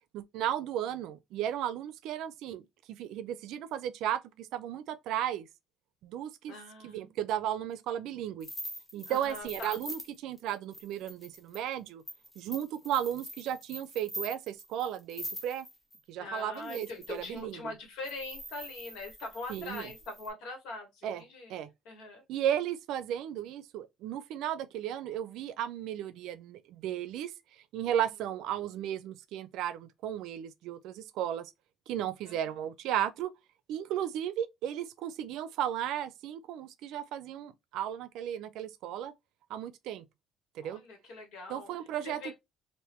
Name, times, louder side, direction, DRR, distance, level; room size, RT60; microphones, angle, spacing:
voice 1, 0.1-2.6 2.9-5.5 6.0-6.6 6.8-8.5 8.9-12.0 12.4-15.7 16.1-17.6 19.5-19.8 21.0-21.2 21.5-21.7 22.3-27.3 27.7-31.5 31.9-33.3 33.7-39.1 39.5-40.0 40.5-40.8 41.5-42.3, right 10 dB, 75° right, 0.4 m, -35 dB
voice 2, 6.5-7.1 9.1-9.8 16.2-21.5 21.8-22.2 27.9-28.0 32.2-32.4 40.6-42.3, left 3 dB, 85° left, 1.5 m, -42 dB
sound 1, 8.4-16.0 16.5-17.4 18.0-20.3, equal, 15° left, 0.9 m, -44 dB
3.5 x 2.6 x 3.0 m
cardioid pair, 155°, 0 cm